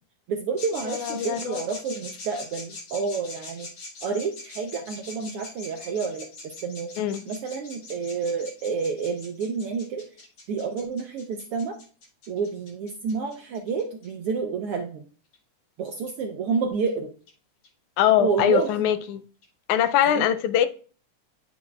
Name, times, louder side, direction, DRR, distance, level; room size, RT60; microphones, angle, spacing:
voice 1, 0.3-3.7 4.0-6.9 7.3-10.0 10.5-11.8 12.3-15.0 15.8-17.1 18.2-18.9 20.1-20.2, right 5 dB, 80° right, 1.3 m, -29 dB
sound 1, 0.6-14.1 15.3-15.4 16.1-16.2 16.9-17.0 17.3-17.4 17.6-17.7 18.1-18.2 18.4-18.5 18.7-18.8 19.0-19.1 19.4-19.5 19.9-20.0, left 2 dB, 65° left, 2.5 m, -42 dB
voice 2, 0.9-1.6 7.0-7.2 18.0-19.2 19.7-20.7, left 10 dB, 90° left, 2.0 m, -22 dB
9.3 x 6.1 x 2.4 m
omnidirectional pair, 3.3 m